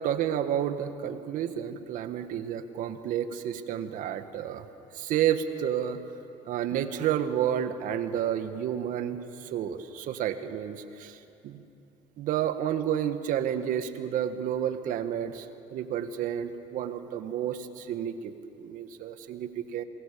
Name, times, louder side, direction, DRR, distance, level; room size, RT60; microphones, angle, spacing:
voice 1, 0.0-4.7 4.9-6.0 6.4-11.6 12.2-19.8, right 10 dB, 65° right, 9 dB, 1.7 m, -30 dB
27.0 x 22.5 x 7.0 m, 2.9 s
supercardioid pair, 85°, 15 cm